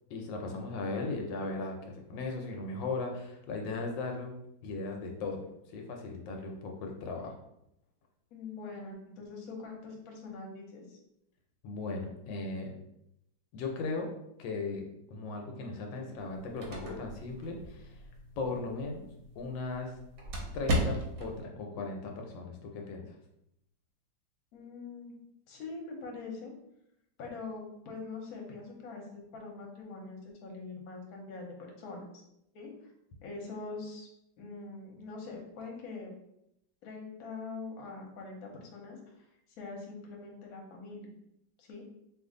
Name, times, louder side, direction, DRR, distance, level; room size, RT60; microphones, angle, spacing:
voice 1, 0.1-4.3 4.6-7.4 11.6-12.8 13.5-14.1 14.4-18.0 18.4-19.0 19.4-20.0 20.5-23.2, left 3 dB, 85° left, 2 dB, 1.3 m, -37 dB
voice 2, 8.3-11.0 24.5-25.2 25.5-26.5 27.2-32.2 32.5-32.7 33.2-34.1 34.4-36.1 36.8-39.3 39.6-41.1 41.6-41.8, left 3 dB, 60° left, 0 dB, 1.1 m, -43 dB
sound 1, 16.2-21.4, equal, 65° right, 0.9 m, -37 dB
2.9 x 2.5 x 3.7 m, 0.79 s
omnidirectional pair, 2.0 m